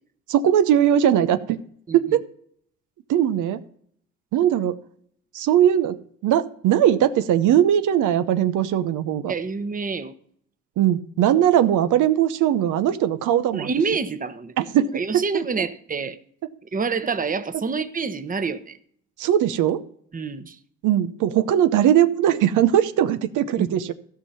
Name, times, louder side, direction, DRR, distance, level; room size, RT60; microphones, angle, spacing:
voice 1, 0.3-1.6 1.9-2.2 3.1-3.6 4.3-4.8 5.3-9.3 10.8-13.7 14.6-15.4 19.2-19.8 20.8-23.9, right 10 dB, 85° right, 11 dB, 0.8 m, -20 dB
voice 2, 1.9-2.2 9.3-10.1 13.5-14.5 14.9-16.2 16.7-18.8 20.1-20.6 23.6-23.8, right 5 dB, 25° right, 11 dB, 1.0 m, -27 dB
15.0 x 5.7 x 5.5 m, 0.64 s
cardioid pair, 90°, 30 cm